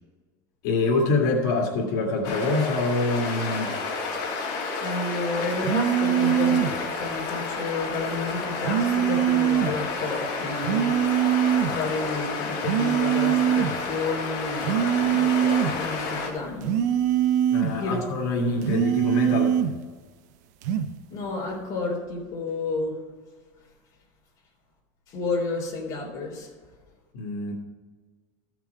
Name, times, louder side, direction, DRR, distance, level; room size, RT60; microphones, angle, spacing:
voice 1, 0.6-3.8 17.5-19.6 27.1-27.5, left 3 dB, 85° left, -2 dB, 2.1 m, -25 dB
sound 1, 2.2-16.3, left 4 dB, 55° left, 2.8 m, -31 dB
voice 2, 4.8-16.8 17.6-18.0 21.1-23.0 25.1-26.5, left 3 dB, 35° left, -2 dB, 3.4 m, -31 dB
sound 2, 5.6-6.8 8.6-9.8 10.6-11.8 12.6-13.8 14.6-15.8 16.6-17.8 18.6-19.8 20.6-20.9, right 10 dB, 75° right, 0.7 m, -23 dB
14.5 x 6.1 x 4.6 m, 1.4 s
cardioid pair, 165°, 9 cm